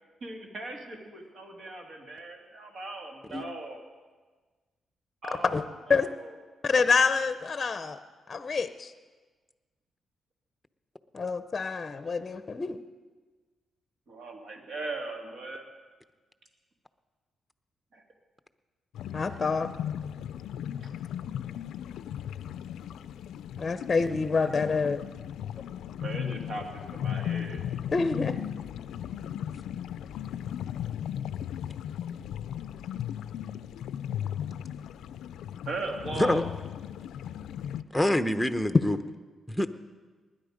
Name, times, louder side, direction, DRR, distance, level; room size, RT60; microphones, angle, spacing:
voice 1, 0.2-3.8 5.2-6.3 14.1-15.7 17.9-18.0 26.0-27.6 35.7-36.4, right 2 dB, 60° right, 2 dB, 2.6 m, -39 dB
voice 2, 6.6-8.0 8.3-8.9 11.1-12.8 19.1-19.7 23.6-25.0 27.9-28.4, left 4 dB, 35° left, 11 dB, 0.6 m, -27 dB
sound 1, 18.9-37.8, left 10 dB, 85° left, 0.4 m, -36 dB
voice 3, 37.9-39.0 39.5-39.7, left 1 dB, 5° left, 10 dB, 0.8 m, -25 dB
20.0 x 10.0 x 5.2 m, 1.4 s
cardioid pair, 80°, 0 cm